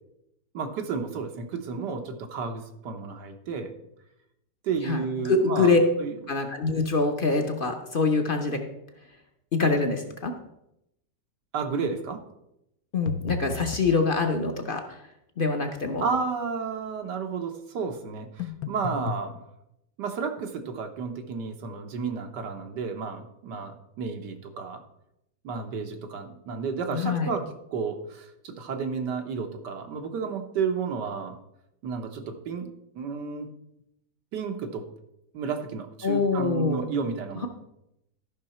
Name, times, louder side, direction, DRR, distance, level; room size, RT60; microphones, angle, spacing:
voice 1, 0.5-3.7 4.6-6.1 11.5-12.2 16.0-19.4 20.0-24.8 25.4-31.4 31.8-33.5 34.3-34.9 35.3-37.5, right 5 dB, 90° right, 5 dB, 1.6 m, -32 dB
voice 2, 4.8-5.8 6.3-8.6 9.5-10.3 12.9-15.0 15.4-16.1 26.9-27.3 36.0-36.8, left 4 dB, 45° left, 4 dB, 0.7 m, -25 dB
sound 1, 13.1-14.0 18.4-19.3, left 6 dB, 65° left, 1.0 m, -34 dB
13.0 x 5.7 x 4.3 m, 0.83 s
omnidirectional pair, 1.8 m